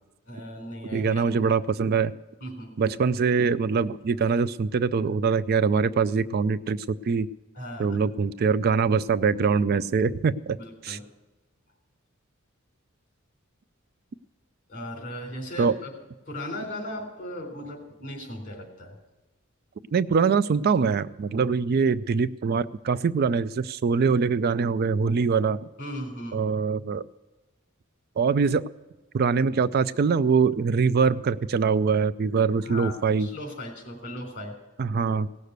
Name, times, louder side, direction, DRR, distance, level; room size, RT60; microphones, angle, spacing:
voice 1, 0.3-1.4 2.4-2.7 7.5-8.0 10.6-11.1 14.7-15.9 16.3-19.0 25.8-26.4 32.6-32.9 33.2-34.6, left 1 dB, 40° left, 3 dB, 3.7 m, -37 dB
voice 2, 0.9-2.1 2.8-7.3 7.8-10.6 10.8-11.0 15.6-15.7 19.9-25.6 26.3-27.0 28.2-28.6 29.1-33.3 34.8-35.3, right 5 dB, 50° right, 15 dB, 0.4 m, -23 dB
17.5 x 6.7 x 8.0 m, 1.2 s
head